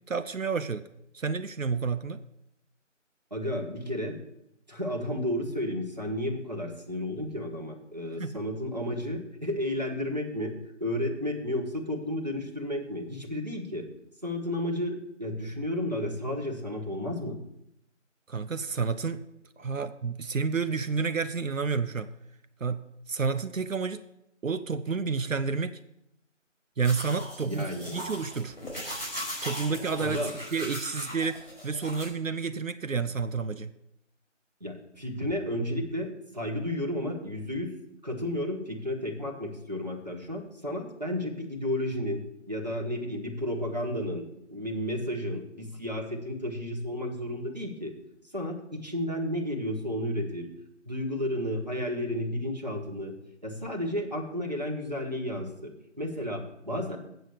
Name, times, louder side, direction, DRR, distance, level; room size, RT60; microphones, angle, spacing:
voice 1, 0.1-0.8 1.1-2.2 8.2-8.4 18.3-19.2 19.6-22.1 22.6-22.8 23.1-24.0 24.4-25.8 26.8-27.6 27.9-28.5 29.4-30.2 30.5-33.7, right 5 dB, 85° right, 10 dB, 0.7 m, -30 dB
voice 2, 3.3-4.2 4.7-10.5 10.8-13.9 14.2-17.4 27.4-28.1 30.0-30.3 34.6-37.7 38.0-42.2 42.5-44.2 44.5-47.9 48.3-50.5 50.8-53.1 53.4-57.0, left 1 dB, 35° right, 0 dB, 1.4 m, -32 dB
sound 1, 26.8-32.0, equal, 45° left, 4.6 m, -38 dB
7.9 x 7.7 x 7.1 m, 0.80 s
figure-of-eight pair, 180°, 38 cm